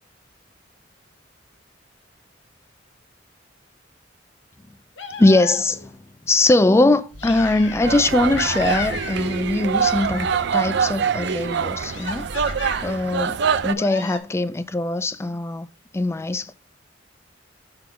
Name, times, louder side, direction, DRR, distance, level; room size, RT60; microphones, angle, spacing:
sound 1, 5.0-5.9 7.2-8.0 8.3-9.5 9.8-10.6 11.8-13.1 13.7-14.2, left 5 dB, 70° left, 0.9 m, -34 dB
voice 1, 5.2-6.0 6.2-12.4 12.8-15.7 15.9-16.5, left 2 dB, 15° left, 0.3 m, -21 dB
sound 2, 7.1-12.8, equal, 45° right, 1.0 m, -41 dB
sound 3, 7.8-13.7, right 7 dB, 65° right, 0.4 m, -24 dB
6.1 x 3.8 x 5.7 m
head